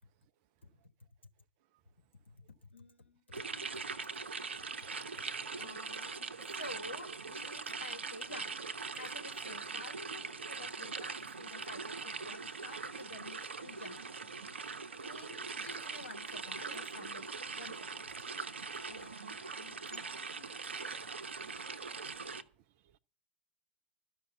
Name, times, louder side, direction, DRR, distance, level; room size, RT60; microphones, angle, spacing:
voice 1, 2.3-4.0 4.8-4.9 5.6-8.5 9.0-14.0 14.4-14.6 15.0-18.3 18.9-20.5, left 2 dB, 80° left, 1.3 m, -51 dB
sound 1, 3.3-22.4, right 4 dB, 70° right, 0.8 m, -42 dB
voice 2, 4.5-5.8, right 11 dB, 40° right, 0.5 m, -61 dB
13.0 x 5.4 x 9.0 m
figure-of-eight pair, 100°, 6 cm